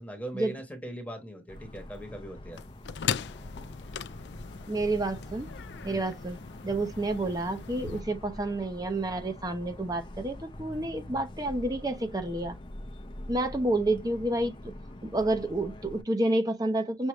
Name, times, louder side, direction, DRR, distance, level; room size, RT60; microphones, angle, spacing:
voice 1, 0.0-2.6 5.9-6.1, right 1 dB, 10° left, 1.2 m, -40 dB
Motor vehicle (road) / Siren, 1.5-16.0, left 1 dB, 30° left, 0.7 m, -44 dB
sound 1, 2.6-8.0, left 8 dB, 80° left, 0.4 m, -38 dB
voice 2, 4.7-5.5 5.8-6.4 6.6-12.6 13.3-14.7 15.0-17.1, right 2 dB, 20° right, 0.8 m, -29 dB
6.3 x 2.6 x 3.2 m
head